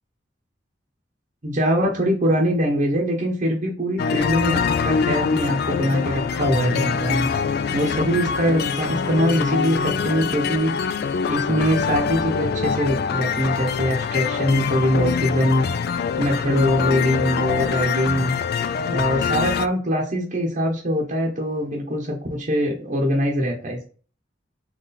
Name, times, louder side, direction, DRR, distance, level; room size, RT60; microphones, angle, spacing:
voice 1, 1.4-7.3 7.7-11.0 11.3-15.9 16.2-18.3 18.9-23.8, equal, 40° right, -1 dB, 0.9 m, -23 dB
sound 1, 4.0-19.7, left 6 dB, 55° left, 0.3 m, -24 dB
4.0 x 3.1 x 3.9 m, 0.40 s
head